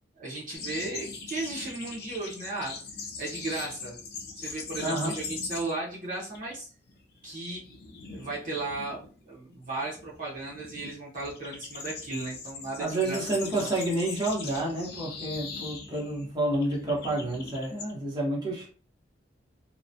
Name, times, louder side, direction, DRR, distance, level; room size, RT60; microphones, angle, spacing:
voice 1, 0.1-2.8 3.2-4.0 4.3-6.7 7.2-7.6 8.1-13.2 13.6-13.7, right 2 dB, 50° right, -5 dB, 0.9 m, -35 dB
sound 1, 0.5-5.9 6.2-6.5 6.9-17.9, left 4 dB, 60° left, 0.6 m, -41 dB
voice 2, 4.8-5.2 12.8-18.7, right 1 dB, 25° right, -5 dB, 1.1 m, -29 dB
2.8 x 2.2 x 2.6 m, 0.40 s
head